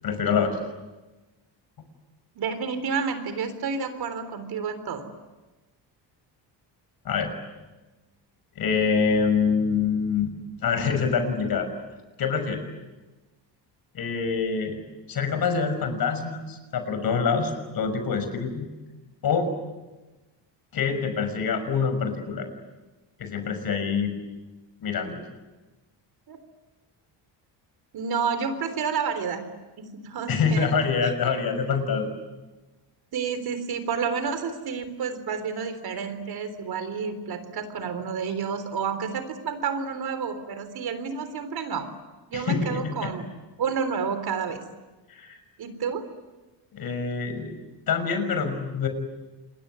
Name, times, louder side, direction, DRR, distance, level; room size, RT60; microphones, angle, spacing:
voice 1, 0.0-0.6 7.0-7.3 8.6-10.3 10.6-11.7 12.2-12.6 13.9-14.8 15.1-18.7 19.2-19.5 20.7-22.5 23.2-24.2 24.8-25.2 30.3-32.1 42.3-43.1 45.1-45.4 46.7-47.6 47.9-48.9, left 5 dB, 55° left, 8 dB, 6.1 m, -25 dB
voice 2, 2.4-5.0 26.3-26.4 27.9-29.4 29.8-30.7 31.3-31.4 33.1-41.9 42.3-43.3 43.6-44.6 45.6-46.1, right 6 dB, 60° right, 10 dB, 3.7 m, -30 dB
27.0 x 22.0 x 9.6 m, 1.2 s
cardioid pair, 125°, 43 cm